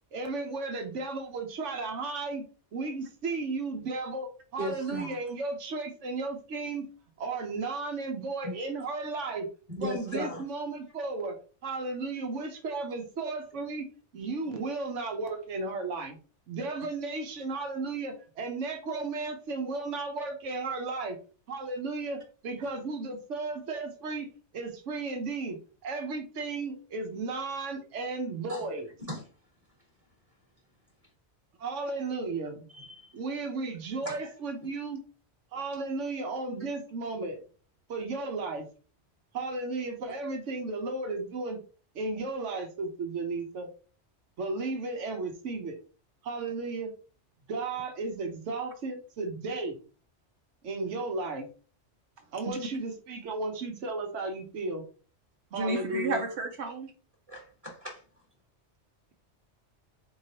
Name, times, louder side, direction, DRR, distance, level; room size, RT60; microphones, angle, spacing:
voice 1, 0.1-2.4 2.7-6.9 7.2-9.5 9.8-11.4 11.6-13.9 14.1-16.2 16.5-21.2 21.5-24.3 24.5-25.6 25.8-28.9 31.6-32.6 33.1-35.0 35.5-37.4 37.9-38.7 39.3-41.6 41.9-43.7 44.4-45.8 46.2-46.9 47.5-49.8 50.6-51.5 52.3-54.8 55.5-56.2, right 3 dB, 90° right, 1.2 m, -34 dB
voice 2, 4.6-5.2 8.4-8.5 9.7-10.4 28.5-28.6 29.1-29.2 32.7-33.1 34.0-34.2 57.3-58.0, equal, 30° right, 1.3 m, -36 dB
voice 3, 55.5-56.9, right 3 dB, 70° right, 1.0 m, -32 dB
4.4 x 3.2 x 2.8 m
omnidirectional pair, 1.2 m